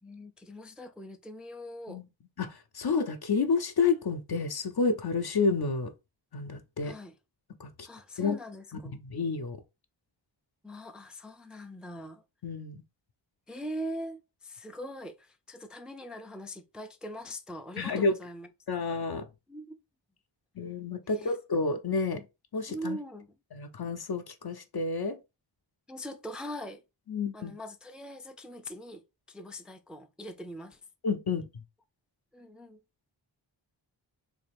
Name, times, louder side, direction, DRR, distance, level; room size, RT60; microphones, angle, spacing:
voice 1, 0.0-2.0 6.8-7.1 7.8-9.0 10.6-12.2 13.5-18.5 19.5-19.8 21.1-21.4 22.7-23.3 25.9-26.8 27.3-30.8 32.3-32.8, equal, ahead, 0.4 m, -42 dB
voice 2, 2.4-5.9 6.3-6.9 7.6-7.9 8.2-8.4 9.0-9.6 12.4-12.8 17.8-18.1 18.7-19.3 20.6-22.2 22.5-23.0 23.5-25.2 27.1-27.5 31.0-31.5, left 4 dB, 55° left, 0.7 m, -30 dB
3.6 x 2.4 x 3.4 m
wide cardioid pair, 55°, 47 cm